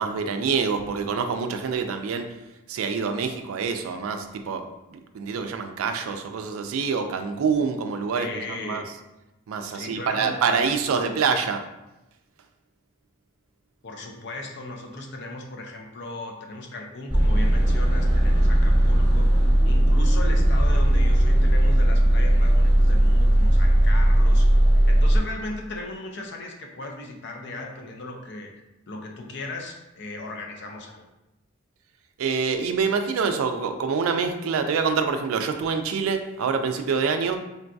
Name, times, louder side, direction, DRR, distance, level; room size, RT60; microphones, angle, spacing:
voice 1, 0.0-2.3 2.7-8.8 9.5-11.6 32.2-37.4, right 5 dB, 90° right, 7 dB, 0.3 m, -26 dB
voice 2, 8.1-8.9 9.6-11.2 13.8-19.3 19.6-28.5 28.9-31.0, left 2 dB, 55° left, 2 dB, 0.5 m, -37 dB
sound 1, 17.1-25.2, right 1 dB, 20° right, 1.0 m, -18 dB
3.8 x 2.5 x 2.3 m, 0.97 s
head